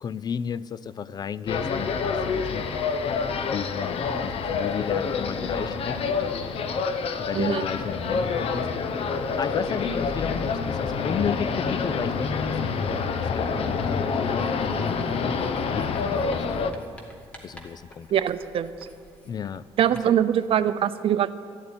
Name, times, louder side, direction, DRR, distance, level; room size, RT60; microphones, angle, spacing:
voice 1, 0.0-2.6 3.5-6.0 7.2-8.8 9.4-16.9 17.4-18.1 19.3-19.6 20.1-20.2, left 7 dB, 40° left, 18 dB, 0.4 m, -33 dB
sound 1, 1.5-16.7, left 5 dB, 65° left, 0.9 m, -27 dB
Writing, 14.4-20.3, equal, 10° left, 1.8 m, -50 dB
voice 2, 18.1-18.7 19.8-21.3, right 10 dB, 60° right, 13 dB, 0.6 m, -23 dB
13.5 x 8.4 x 9.7 m, 2.2 s
cardioid pair, 125°, 11 cm